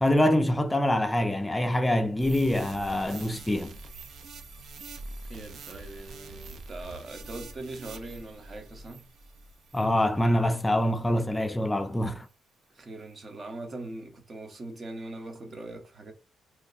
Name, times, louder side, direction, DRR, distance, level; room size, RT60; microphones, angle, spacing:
voice 1, 0.0-3.8 9.7-12.3, left 1 dB, 10° left, 0.4 m, -25 dB
sound 1, 2.2-10.8 11.4-11.5, right 2 dB, 65° right, 0.5 m, -45 dB
voice 2, 5.2-9.0 12.7-16.1, right 2 dB, 35° right, 0.9 m, -41 dB
3.1 x 2.1 x 4.0 m
cardioid pair, 115°, 0 cm